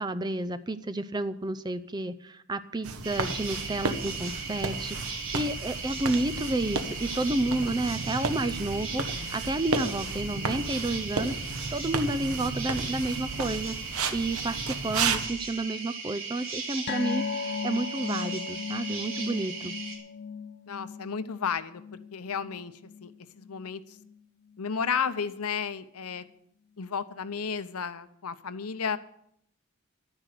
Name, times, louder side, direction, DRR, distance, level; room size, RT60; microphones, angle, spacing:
voice 1, 0.0-19.7, right 2 dB, 20° right, 11 dB, 0.5 m, -31 dB
sound 1, 2.8-15.3, right 4 dB, 75° right, 1.1 m, -33 dB
sound 2, 3.0-20.0, right 4 dB, 60° right, 3.4 m, -37 dB
sound 3, 16.9-23.7 24.0-24.2 24.5-24.6, left 6 dB, 45° left, 0.4 m, -37 dB
voice 2, 20.7-21.8 22.1-22.7 23.0-23.1 23.4-23.8 24.6-26.2 26.8-29.0, left 6 dB, 85° left, 13 dB, 0.8 m, -32 dB
11.5 x 10.0 x 6.6 m, 0.71 s
head